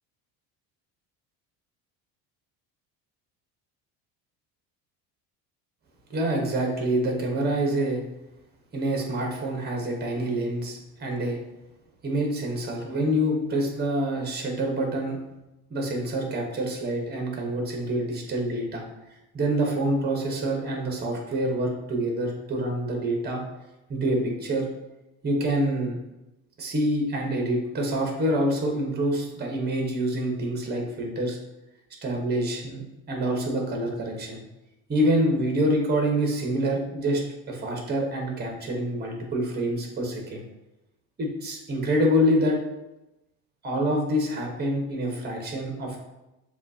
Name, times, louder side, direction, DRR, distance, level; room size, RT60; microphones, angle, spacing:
voice 1, 6.1-8.0 8.7-11.4 12.0-15.2 15.7-18.8 19.3-23.4 23.9-24.7 25.2-26.0 26.6-31.4 32.0-34.4 34.9-37.2 37.5-40.4 41.2-42.6 43.6-46.0, right 1 dB, 25° right, 1 dB, 1.1 m, -26 dB
7.1 x 2.5 x 2.7 m, 0.96 s
cardioid pair, 125°, 37 cm